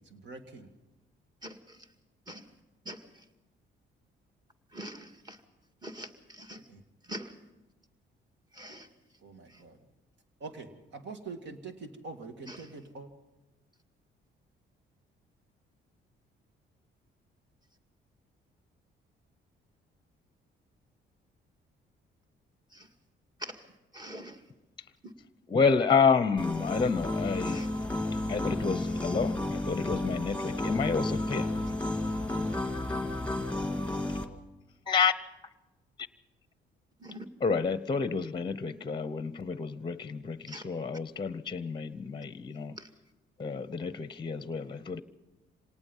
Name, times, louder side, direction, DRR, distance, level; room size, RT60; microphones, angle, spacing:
voice 1, 0.1-0.7 6.7-6.8 9.2-9.8 10.4-13.1, right 4 dB, 65° right, 6 dB, 2.3 m, -44 dB
voice 2, 1.4-1.9 2.3-2.4 2.9-3.2 4.7-5.4 5.8-6.6 7.0-7.3 8.5-8.9 9.5-9.6 12.5-12.7 22.7-22.9 23.4-23.6 23.9-24.4 25.0-25.1 27.5-27.7 37.0-37.3 40.5-40.6 42.8-42.9, right 1 dB, 20° right, 5 dB, 2.0 m, -44 dB
voice 3, 25.5-27.7 28.3-31.5 34.9-35.1 37.4-42.8 43.4-45.0, left 5 dB, 25° left, 15 dB, 0.8 m, -29 dB
sound 1, 26.4-34.2, left 2 dB, 5° left, 2.0 m, -32 dB
26.0 x 18.5 x 5.5 m, 1.0 s
cardioid pair, 90°, 20 cm